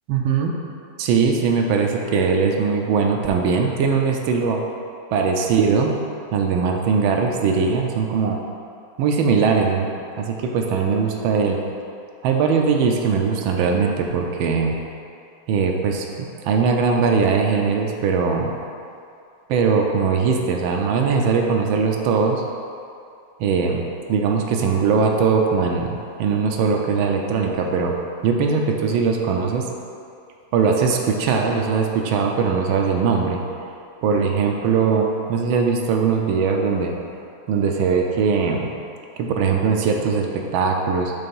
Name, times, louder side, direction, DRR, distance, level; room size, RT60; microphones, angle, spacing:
voice 1, 0.1-0.5 1.0-4.6 5.1-6.0 6.3-8.4 9.0-9.9 10.2-11.6 12.2-14.8 15.5-18.5 19.5-22.4 23.4-23.8 24.1-27.9 28.2-29.6 30.5-33.4 34.0-36.9 37.5-38.7 39.2-41.1, right 5 dB, 80° right, 2 dB, 1.4 m, -20 dB
5.7 x 3.3 x 5.3 m, 2.5 s
omnidirectional pair, 2.2 m